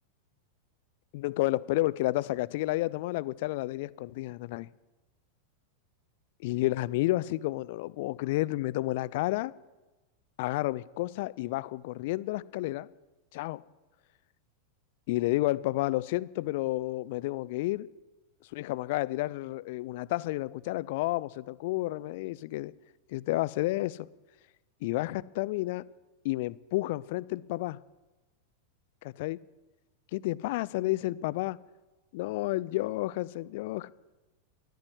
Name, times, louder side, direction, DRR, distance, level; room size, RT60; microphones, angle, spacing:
voice 1, 1.1-4.7 6.4-9.5 10.4-12.9 13.3-13.6 15.1-17.9 18.5-22.7 23.1-24.1 24.8-25.8 26.2-27.8 29.0-29.4 30.1-31.6 32.1-33.9, left 18 dB, 50° left, 0.5 m, -31 dB
14.0 x 12.0 x 7.9 m
figure-of-eight pair, 90°, 0 cm